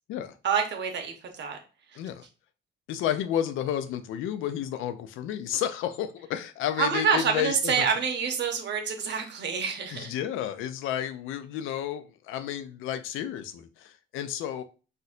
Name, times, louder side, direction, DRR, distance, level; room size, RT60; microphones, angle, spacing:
voice 1, 0.4-1.6 6.8-10.1, right 6 dB, 60° right, 4 dB, 0.8 m, -27 dB
voice 2, 2.9-7.9 9.9-14.6, left 10 dB, 85° left, 10 dB, 0.4 m, -31 dB
4.1 x 2.6 x 2.4 m, 0.34 s
cardioid pair, 90°, 20 cm